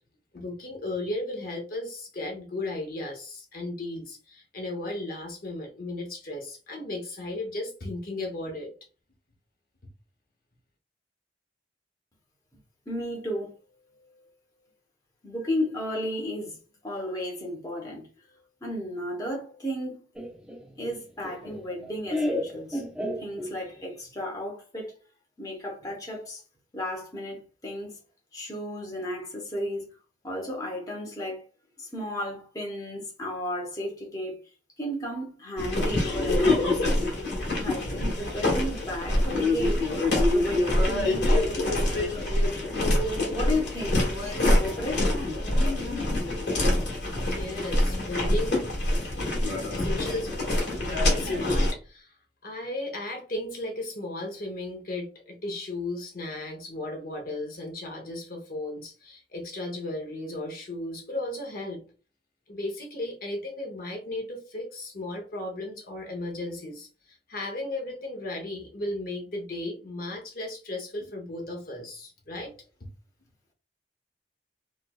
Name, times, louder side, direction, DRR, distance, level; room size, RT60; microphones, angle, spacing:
voice 1, 0.3-8.7 47.3-48.6 49.7-50.4 50.8-52.2 52.4-61.8 62.5-72.5, left 2 dB, 50° left, 0.8 m, -35 dB
voice 2, 12.9-13.5 15.2-16.6 16.8-18.1 18.6-20.0 20.8-22.8 23.2-24.9 25.4-26.4 26.7-27.9 28.3-29.9 30.2-31.4 31.8-34.4 34.8-37.0 37.6-39.8 40.1-42.3 43.3-45.1, left 1 dB, 20° left, 0.9 m, -33 dB
Laughter, 20.1-23.8, left 1 dB, 5° right, 0.4 m, -33 dB
sound 1, 35.6-51.7, left 1 dB, 65° left, 1.6 m, -25 dB
4.4 x 2.3 x 2.2 m
head